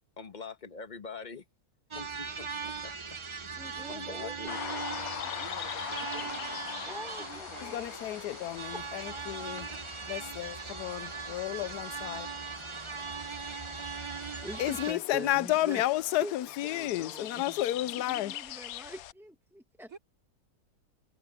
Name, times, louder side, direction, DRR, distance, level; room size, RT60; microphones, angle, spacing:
voice 1, 0.2-1.4 1.9-2.9 3.9-4.6, left 4 dB, 30° left, 1.3 m, -43 dB
sound 1, 1.9-14.9, right 5 dB, 35° right, 0.4 m, -40 dB
voice 2, 3.6-5.3 6.1-6.3 6.9-7.9 8.7-8.8 14.4-15.8 16.2-16.3 16.6-17.6 17.9-20.0, equal, ahead, 1.0 m, -44 dB
sound 2, 4.5-19.1, left 13 dB, 70° left, 1.0 m, -43 dB
voice 3, 5.3-6.7 7.2-8.0 19.9-20.0, right 4 dB, 60° right, 3.4 m, -50 dB
voice 4, 7.6-12.3 14.6-18.4, left 14 dB, 90° left, 1.2 m, -32 dB
omnidirectional pair, 1.7 m